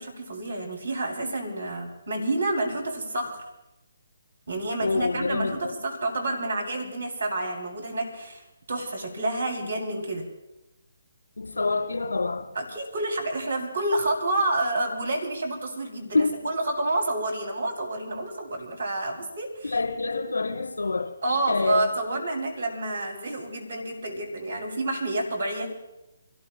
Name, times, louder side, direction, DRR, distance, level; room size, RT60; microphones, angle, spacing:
voice 1, 0.0-3.4 4.5-8.4 8.7-10.2 12.6-19.7 21.2-25.7, right 2 dB, 60° right, 2 dB, 3.7 m, -29 dB
voice 2, 4.8-5.7 11.4-12.5 16.1-16.4 19.6-21.1 21.5-21.8, left 3 dB, 60° left, -2 dB, 4.5 m, -26 dB
27.5 x 18.0 x 2.4 m, 0.94 s
figure-of-eight pair, 140°, 0 cm